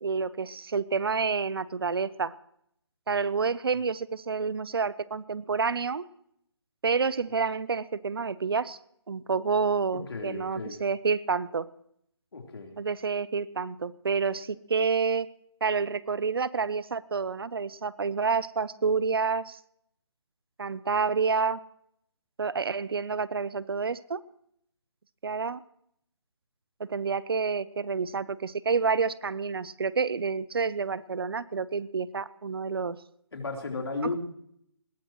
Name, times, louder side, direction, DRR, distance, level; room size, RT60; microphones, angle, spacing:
voice 1, 0.0-2.3 3.1-6.0 6.8-8.8 9.1-11.7 12.8-15.3 15.6-19.6 20.6-21.6 22.4-24.2 25.2-25.6 26.8-33.0, right 5 dB, 55° right, 19 dB, 0.7 m, -28 dB
voice 2, 9.9-10.8 12.3-12.8 33.3-34.2, left 3 dB, 60° left, 2 dB, 3.7 m, -34 dB
21.0 x 16.5 x 3.1 m, 0.71 s
hypercardioid pair, 170°, 15 cm